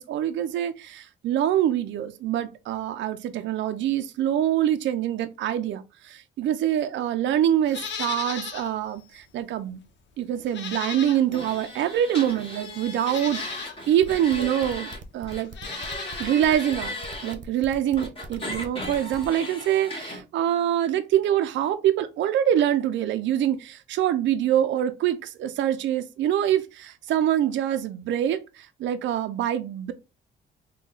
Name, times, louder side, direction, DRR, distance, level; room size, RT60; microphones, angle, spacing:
voice 1, 0.0-9.8 10.2-14.9 15.1-15.8 16.2-29.9, right 11 dB, 70° right, 0.4 m, -25 dB
Livestock farm animals working animals, 7.6-8.7 9.1-9.2 10.4-11.5 12.3-12.4 13.0-13.8 15.4-16.4 16.6-16.7, left 6 dB, 65° left, 0.9 m, -36 dB
sound 1, 11.3-15.0 15.3-17.3 18.0-20.2, left 1 dB, 30° left, 1.6 m, -36 dB
sound 2, 14.0-19.3, right 4 dB, 40° right, 0.8 m, -43 dB
3.7 x 2.2 x 3.9 m
cardioid pair, 90°, 20 cm